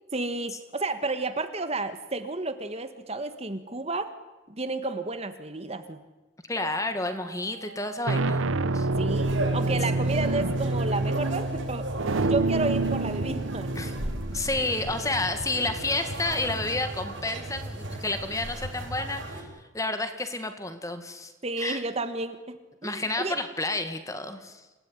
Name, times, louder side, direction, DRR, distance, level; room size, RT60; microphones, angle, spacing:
voice 1, 0.1-4.1 4.5-6.0 9.0-13.7 21.4-22.5 22.8-23.4, right 2 dB, 30° right, 9 dB, 1.5 m, -32 dB
voice 2, 6.5-8.5 8.7-8.9 9.9-10.1 13.8-13.9 14.3-21.3 21.6-21.8 22.8-24.6, left 2 dB, 15° left, 8 dB, 2.0 m, -30 dB
sound 1, 6.6-7.0 7.8-16.4, right 2 dB, 90° right, 1.0 m, -28 dB
sound 2, 9.1-19.4, right 1 dB, 75° right, 7.0 m, -35 dB
28.0 x 18.0 x 9.7 m, 1.1 s
head